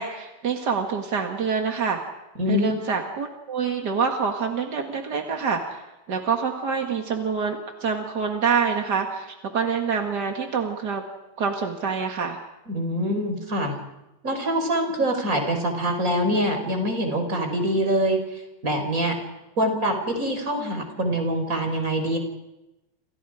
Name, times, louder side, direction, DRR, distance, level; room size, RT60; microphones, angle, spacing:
voice 1, 0.0-2.0 2.5-11.0 11.4-12.4, right 6 dB, 40° right, 3 dB, 1.5 m, -26 dB
voice 2, 2.4-2.7 12.7-13.8 14.2-19.1 19.6-22.2, equal, 20° right, 5 dB, 4.9 m, -24 dB
30.0 x 28.0 x 5.0 m, 0.96 s
omnidirectional pair, 4.4 m